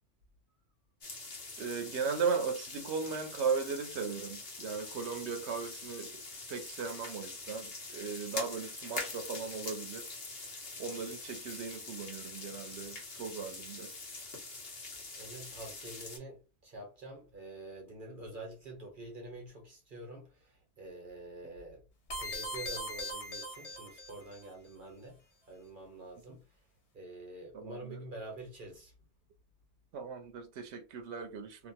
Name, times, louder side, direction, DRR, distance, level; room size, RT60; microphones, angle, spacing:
sound 1, 1.0-16.2, left 3 dB, 60° left, 1.1 m, -44 dB
voice 1, 1.6-6.2 6.5-10.1 10.8-13.9 21.4-21.5 26.3-26.4 27.5-28.0 29.9-31.7, right 5 dB, 80° right, 0.9 m, -37 dB
voice 2, 15.1-21.8 22.1-25.2 25.5-26.4 26.9-28.9, right 2 dB, 50° right, 1.3 m, -47 dB
sound 2, 22.1-24.4, equal, 80° left, 1.3 m, -40 dB
2.8 x 2.4 x 2.7 m
omnidirectional pair, 1.1 m